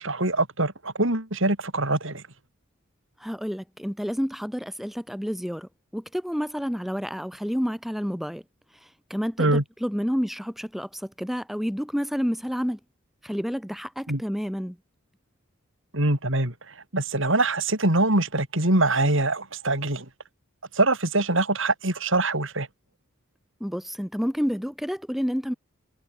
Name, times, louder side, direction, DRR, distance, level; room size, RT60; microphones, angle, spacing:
voice 1, 0.0-2.2 9.4-9.6 14.1-14.2 15.9-16.5 16.9-20.0 20.7-22.7, right 2 dB, 65° right, 6.2 m, -23 dB
voice 2, 3.2-8.4 9.1-12.8 13.2-14.8 23.6-25.5, equal, ahead, 3.3 m, -29 dB
head